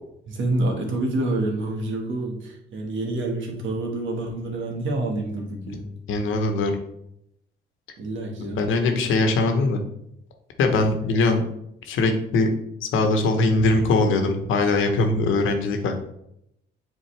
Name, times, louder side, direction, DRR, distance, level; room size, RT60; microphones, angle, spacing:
voice 1, 0.3-5.9 8.0-8.7, right 2 dB, 75° right, 1 dB, 1.5 m, -27 dB
voice 2, 6.1-6.8 8.6-9.8 10.6-11.4 11.8-12.5 12.8-15.9, left 3 dB, 80° left, 4 dB, 1.1 m, -21 dB
7.6 x 4.1 x 3.3 m, 0.79 s
cardioid pair, 90°, 20 cm